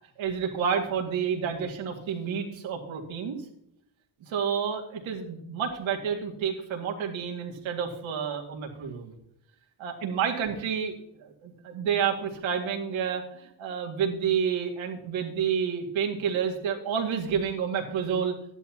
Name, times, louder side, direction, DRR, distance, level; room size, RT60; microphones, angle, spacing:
voice 1, 0.2-3.4 4.3-9.1 9.8-10.9 11.2-18.3, right 7 dB, 80° right, 1 dB, 2.2 m, -29 dB
14.0 x 11.0 x 2.9 m, 0.76 s
cardioid pair, 140°, 46 cm